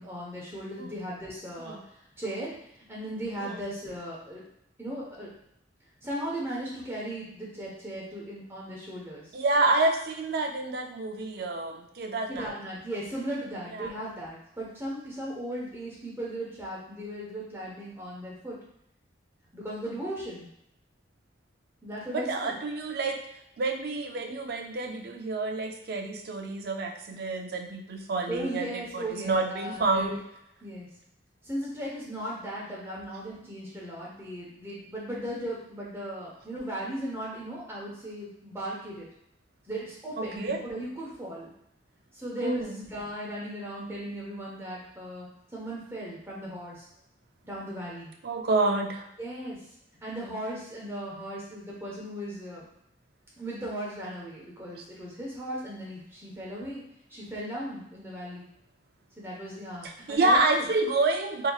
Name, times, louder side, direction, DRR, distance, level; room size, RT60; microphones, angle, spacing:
voice 1, 0.0-1.8 2.2-2.5 2.9-4.4 4.8-5.3 6.0-9.3 12.3-18.6 19.5-20.5 21.8-22.5 28.3-30.2 30.6-30.9 31.4-39.1 39.7-41.5 42.1-46.9 47.4-48.1 49.2-49.6 50.0-52.6 53.4-56.8 57.1-58.4 59.2-60.7, right 1 dB, 15° right, -5 dB, 1.0 m, -37 dB
voice 2, 9.3-12.5 13.7-13.9 22.1-23.3 23.6-30.2 40.2-40.6 42.4-42.8 48.2-49.1 59.8-61.5, right 2 dB, 55° right, 4 dB, 0.4 m, -28 dB
4.2 x 2.9 x 2.3 m, 0.77 s
head